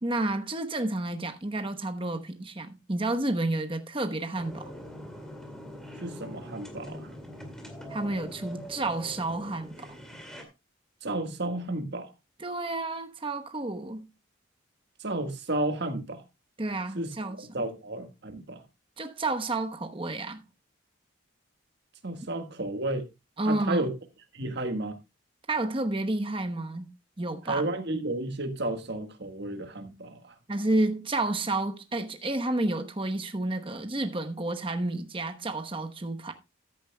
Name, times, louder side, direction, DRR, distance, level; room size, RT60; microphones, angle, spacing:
voice 1, 0.0-4.7 7.9-9.9 12.4-14.1 16.6-17.4 19.0-20.4 23.4-23.8 25.5-26.9 27.2-27.7 30.5-36.3, right 2 dB, 25° right, 1.0 m, -30 dB
sound 1, 4.4-10.4, equal, ahead, 2.2 m, -43 dB
voice 2, 6.0-7.1 11.0-12.1 15.0-16.2 16.9-18.6 22.0-23.1 23.4-23.9 24.3-25.0 27.5-30.3, right 2 dB, 55° right, 1.5 m, -32 dB
14.0 x 10.0 x 2.2 m
head